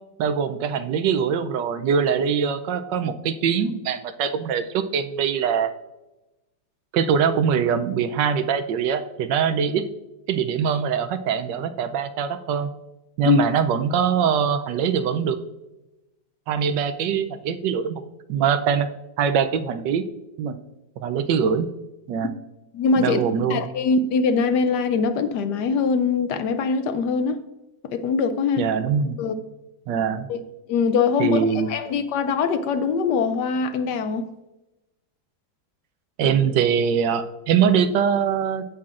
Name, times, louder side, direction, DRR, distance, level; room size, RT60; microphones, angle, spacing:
voice 1, 0.2-5.7 6.9-9.9 10.3-12.7 13.2-15.4 16.5-18.0 18.3-18.9 19.2-20.0 20.4-20.6 21.0-21.7 22.1-22.3 23.0-23.6 28.6-29.2 29.9-30.3 31.2-31.7 36.2-38.7, right 7 dB, 75° right, 1.3 m, -22 dB
voice 2, 22.7-23.2 23.5-27.4 27.8-28.7 29.2-29.4 30.3-30.4 30.7-34.3, left 5 dB, 70° left, 1.1 m, -22 dB
16.0 x 5.7 x 2.5 m
omnidirectional pair, 2.0 m